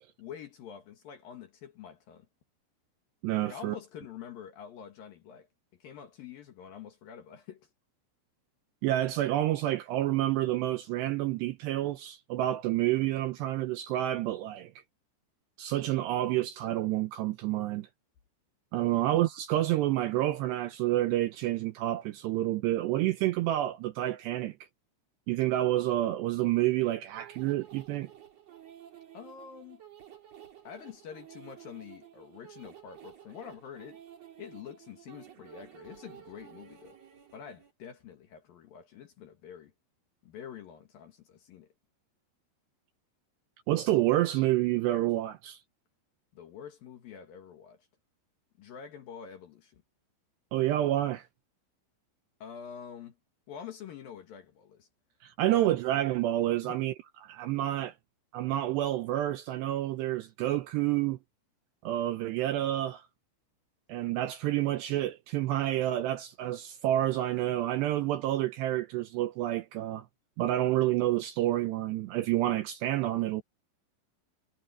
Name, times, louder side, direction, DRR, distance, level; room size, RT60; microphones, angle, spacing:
voice 1, 0.2-2.3 3.5-5.5 5.8-7.7 18.8-19.1 29.1-29.8 30.6-34.0 34.4-37.0 37.3-39.7 40.2-41.7 46.3-47.9 48.6-49.8 52.4-53.2 53.5-54.9 55.4-55.7 56.6-56.8, left 8 dB, 60° left, 2.7 m, -46 dB
voice 2, 3.2-3.8 8.8-14.7 15.6-17.9 18.7-24.5 25.3-28.1 43.7-45.6 50.5-51.3 55.2-56.9 57.2-57.9 58.3-61.2 61.8-63.1 63.9-70.1 70.4-73.4, right 14 dB, 80° right, 2.6 m, -29 dB
sound 1, 27.2-37.7, right 10 dB, 40° right, 2.9 m, -52 dB
omnidirectional pair, 5.7 m